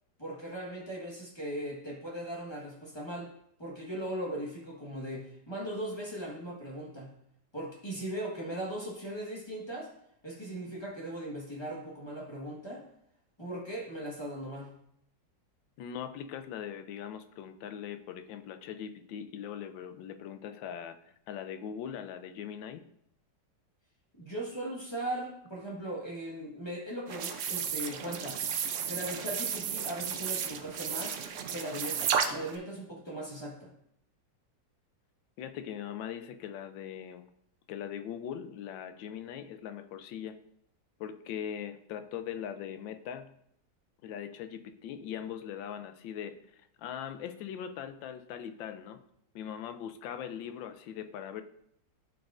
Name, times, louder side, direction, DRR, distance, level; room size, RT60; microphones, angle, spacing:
voice 1, 0.2-3.3 3.6-7.1 7.5-9.9 10.2-12.8 13.4-14.7 24.2-28.4 28.9-31.2 31.5-33.7, right 1 dB, 15° left, -3 dB, 1.2 m, -38 dB
voice 2, 15.8-21.0 21.3-22.9 35.4-37.2 37.7-40.4 41.0-43.3 44.0-49.0 49.3-51.4, left 9 dB, 85° left, 9 dB, 1.3 m, -40 dB
sound 1, 27.1-32.6, right 7 dB, 75° right, 0.7 m, -33 dB
12.0 x 4.6 x 2.5 m, 0.73 s
omnidirectional pair, 2.0 m